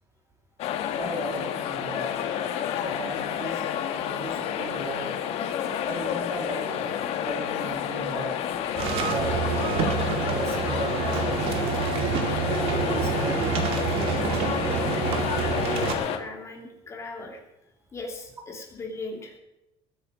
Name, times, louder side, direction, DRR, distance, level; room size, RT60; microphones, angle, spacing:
sound 1, 0.6-16.2, left 9 dB, 60° left, 1.5 m, -30 dB
voice 1, 1.0-2.2 2.7-3.7 3.9-5.1 5.8-6.9 7.2-8.4 9.1-11.3 12.5-14.0, right 2 dB, 20° right, 2 dB, 2.5 m, -36 dB
sound 2, 8.7-15.9, right 5 dB, 55° right, 2.3 m, -27 dB
voice 2, 15.7-17.4 17.9-19.4, left 2 dB, 25° left, 2 dB, 2.8 m, -38 dB
20.5 x 9.3 x 5.1 m, 0.90 s
cardioid pair, 150°, 12 cm